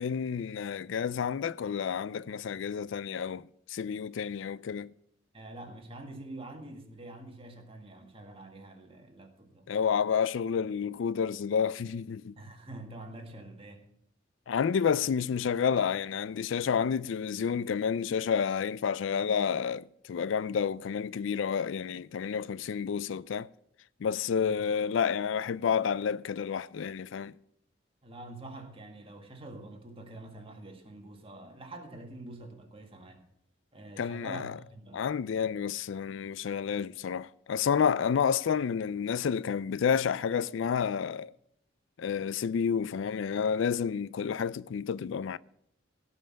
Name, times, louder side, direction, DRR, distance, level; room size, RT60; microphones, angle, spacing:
voice 1, 0.0-4.9 9.7-12.3 14.5-23.5 24.0-27.3 34.0-34.6 34.9-41.3 42.0-45.4, left 7 dB, 70° left, 0.4 m, -30 dB
voice 2, 5.3-9.7 12.4-13.9 24.4-24.6 28.0-33.3 33.7-35.1, right 2 dB, 30° right, 1.8 m, -46 dB
17.0 x 5.7 x 7.5 m
head